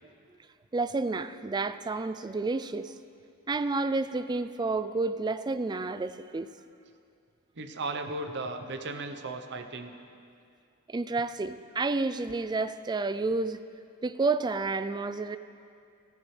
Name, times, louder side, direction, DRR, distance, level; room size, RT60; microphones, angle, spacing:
voice 1, 0.7-3.0 3.5-6.5 10.9-13.6 14.0-15.4, right 3 dB, 20° right, 12 dB, 0.3 m, -30 dB
voice 2, 7.6-9.9, right 2 dB, 55° right, 6 dB, 0.9 m, -36 dB
16.5 x 15.0 x 3.3 m, 2.4 s
head